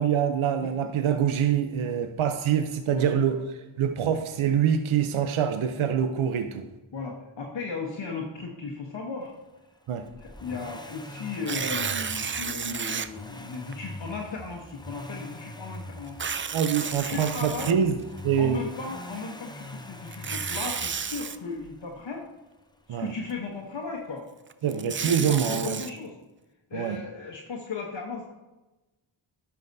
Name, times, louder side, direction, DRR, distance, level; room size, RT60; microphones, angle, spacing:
voice 1, 0.0-3.4 3.8-6.7 9.9-10.1 16.5-17.9 18.2-18.6 22.9-23.1 24.6-25.8 26.7-27.0, right 8 dB, 75° right, 7 dB, 0.6 m, -25 dB
voice 2, 2.9-3.4 6.9-9.3 10.2-16.5 16.8-17.8 18.4-22.2 22.9-24.2 24.6-26.1 26.7-28.3, left 4 dB, 60° left, -2 dB, 1.1 m, -36 dB
Accelerating revving vroom, 10.1-22.0 23.3-23.4, left 1 dB, 10° left, 0.7 m, -43 dB
Tearing, 11.3-13.1 13.7-13.8 16.1-18.2 20.1-21.4 24.5-25.9, right 6 dB, 25° right, 0.4 m, -32 dB
11.5 x 5.7 x 2.6 m, 1.1 s
cardioid pair, 45°, 48 cm